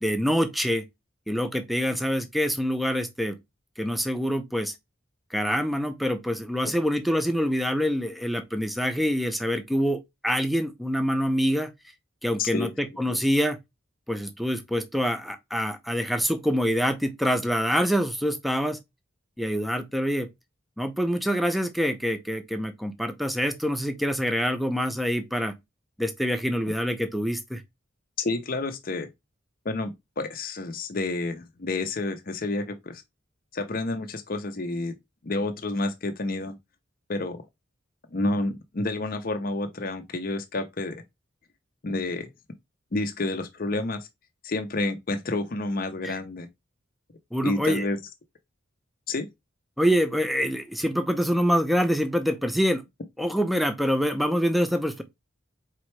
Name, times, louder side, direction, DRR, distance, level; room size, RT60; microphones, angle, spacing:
voice 1, 0.0-0.8 1.3-3.4 3.8-4.7 5.3-11.7 12.2-13.6 14.1-18.8 19.4-20.3 20.8-25.5 26.0-27.6 46.0-46.2 47.3-47.9 49.8-52.8 53.2-55.0, equal, ahead, 0.5 m, -25 dB
voice 2, 12.4-12.7 13.1-13.2 26.7-26.8 28.2-29.1 29.6-33.0 33.5-35.0 35.2-36.6 37.1-37.4 38.1-41.0 41.8-42.3 42.9-44.1 44.4-46.5 47.4-48.0 49.1-49.3, left 2 dB, 45° left, 0.6 m, -29 dB
4.4 x 3.8 x 3.1 m
head